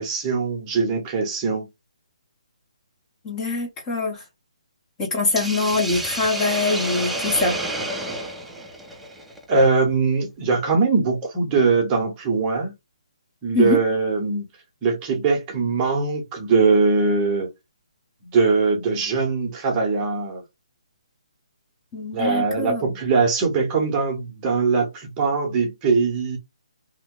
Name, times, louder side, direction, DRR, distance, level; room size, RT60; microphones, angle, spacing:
voice 1, 0.0-1.7 9.5-12.7 13.4-14.5 14.8-17.5 18.2-20.4 22.1-26.4, right 4 dB, 20° right, 0.9 m, -21 dB
voice 2, 3.2-4.2 5.0-7.6 13.5-13.8 21.9-22.8, left 3 dB, 15° left, 0.9 m, -23 dB
Hiss, 5.4-9.6, right 1 dB, 5° right, 0.5 m, -30 dB
2.9 x 2.1 x 3.7 m
hypercardioid pair, 160°, 4 cm